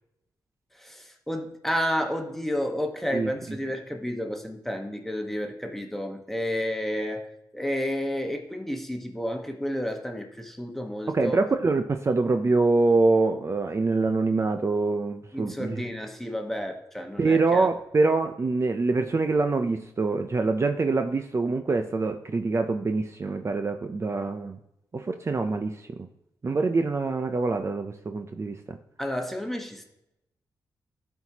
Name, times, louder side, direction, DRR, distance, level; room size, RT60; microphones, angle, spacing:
voice 1, 0.7-7.3 7.5-11.4 15.3-17.7 29.0-29.8, equal, 5° left, 3 dB, 1.2 m, -31 dB
voice 2, 3.1-3.6 11.1-15.9 17.2-24.6 24.9-26.1 26.4-28.8, right 3 dB, 35° right, 7 dB, 0.5 m, -25 dB
12.0 x 4.5 x 2.9 m, 0.86 s
cardioid pair, 65°, 8 cm